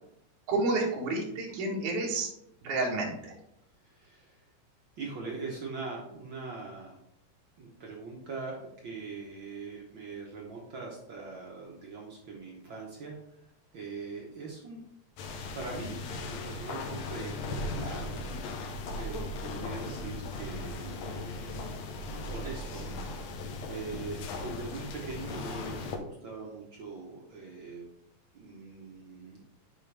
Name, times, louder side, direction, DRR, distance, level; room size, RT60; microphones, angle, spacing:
voice 1, 0.5-2.3 2.6-3.3, right 2 dB, 90° right, -2 dB, 2.9 m, -30 dB
voice 2, 3.8-4.4 5.0-7.0 7.6-13.5 13.7-14.8 15.5-18.3 18.9-21.8 22.1-27.8 28.3-29.4, right 4 dB, 60° right, -2 dB, 1.3 m, -42 dB
sound 1, 15.2-26.0, left 2 dB, 70° left, 1.9 m, -38 dB
7.4 x 5.1 x 3.3 m, 0.78 s
omnidirectional pair, 3.4 m